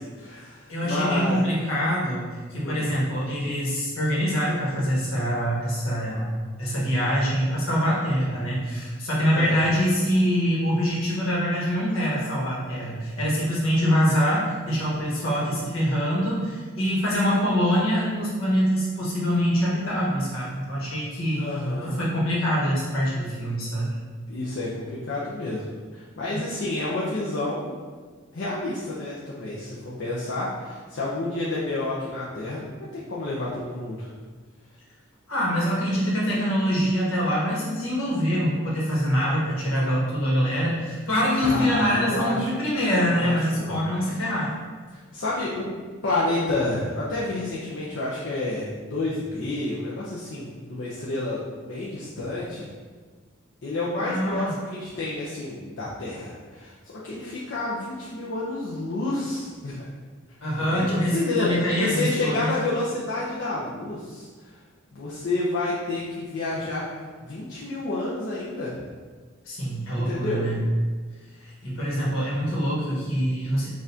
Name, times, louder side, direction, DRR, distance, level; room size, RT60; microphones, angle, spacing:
voice 1, 0.0-1.4 2.5-2.9 9.3-9.7 21.3-22.0 24.3-25.6 25.9-27.7 28.3-34.1 41.4-42.5 43.1-44.2 45.1-45.7 46.0-52.7 53.6-59.9 60.7-60.9 61.1-61.5 61.8-64.3 64.9-66.8 67.2-68.8 70.0-70.5, left 2 dB, 55° left, -7 dB, 0.6 m, -29 dB
voice 2, 0.7-6.3 6.6-21.5 21.8-23.9 35.3-44.5 54.0-54.5 60.4-62.5 69.4-70.6 71.4-73.7, equal, 75° left, -6 dB, 1.3 m, -24 dB
6.2 x 2.5 x 2.7 m, 1.5 s
head